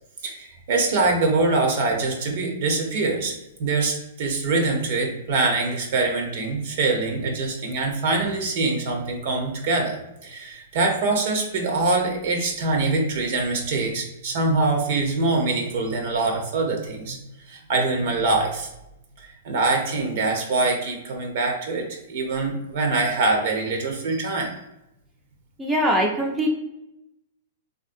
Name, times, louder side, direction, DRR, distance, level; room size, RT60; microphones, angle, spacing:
voice 1, 0.2-3.3 3.6-17.2 17.5-18.7 19.2-24.5, right 3 dB, 60° right, 2 dB, 0.8 m, -24 dB
voice 2, 25.6-26.5, equal, 10° right, -1 dB, 0.5 m, -22 dB
3.4 x 2.5 x 2.6 m, 0.86 s
hypercardioid pair, 120°, 0 cm